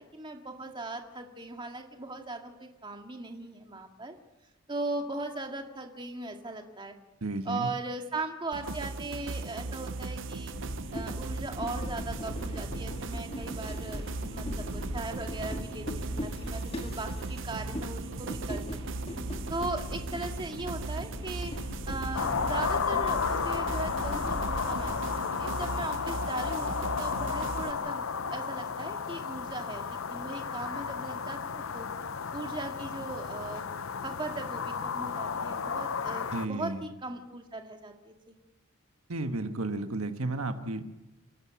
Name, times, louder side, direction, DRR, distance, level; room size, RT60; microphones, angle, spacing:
voice 1, 0.0-4.2 4.7-6.9 7.5-10.5 10.9-18.6 19.5-21.5 21.8-31.9 32.3-33.7 34.0-38.4, right 2 dB, 20° right, 3 dB, 2.0 m, -38 dB
voice 2, 7.2-7.7 36.3-36.8 39.1-40.8, right 2 dB, 80° right, 7 dB, 1.4 m, -33 dB
sound 1, 8.5-27.7, right 3 dB, 60° right, 0.7 m, -38 dB
sound 2, 10.5-25.0, equal, 25° left, 2.0 m, -40 dB
sound 3, 22.1-36.5, left 6 dB, 65° left, 0.7 m, -33 dB
28.0 x 12.0 x 8.3 m, 0.98 s
head